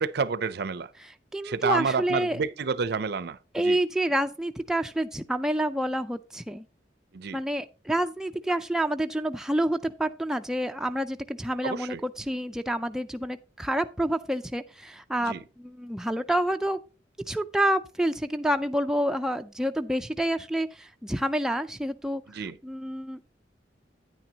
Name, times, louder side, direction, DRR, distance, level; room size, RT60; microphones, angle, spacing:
voice 1, 0.0-0.9 1.4-3.8 7.1-7.4 11.6-12.0 15.2-15.4 22.3-22.6, right 5 dB, 60° right, 0.5 m, -29 dB
voice 2, 1.3-2.4 3.5-6.7 7.3-16.8 17.3-23.3, right 1 dB, 5° right, 0.4 m, -28 dB
9.6 x 8.9 x 2.8 m
head